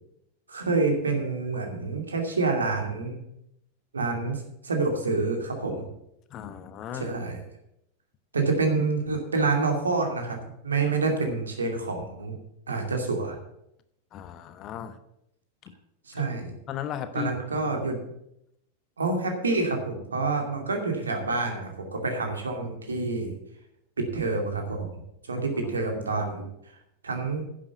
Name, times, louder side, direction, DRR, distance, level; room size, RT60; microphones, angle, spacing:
voice 1, 0.5-3.2 3.9-5.9 6.9-7.4 8.3-12.4 12.7-13.4 16.1-16.6 17.1-18.0 19.0-23.4 24.0-24.9 25.2-26.8 27.0-27.5, right 3 dB, 75° right, 4 dB, 2.5 m, -27 dB
voice 2, 6.3-7.1 14.1-15.0 15.6-15.7 16.2-16.4 16.7-17.7 25.4-25.7, left 8 dB, 35° left, 11 dB, 1.0 m, -37 dB
10.5 x 7.7 x 8.2 m, 0.80 s
figure-of-eight pair, 90°, 0 cm